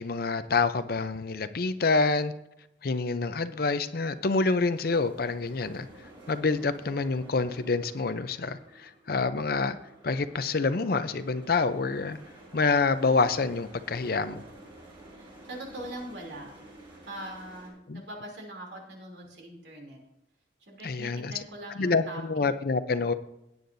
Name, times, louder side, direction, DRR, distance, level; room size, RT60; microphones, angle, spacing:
voice 1, 0.0-2.3 2.8-5.9 6.3-9.8 10.0-12.2 12.5-14.4 17.9-18.0 20.8-21.3 21.8-23.1, left 4 dB, 55° left, 12 dB, 0.6 m, -27 dB
sound 1, 3.3-17.7, right 1 dB, 25° right, 4.9 m, -51 dB
voice 2, 15.1-16.5 17.0-20.0 20.6-22.2, right 1 dB, 70° right, 0 dB, 3.1 m, -42 dB
17.0 x 9.4 x 2.7 m, 0.86 s
head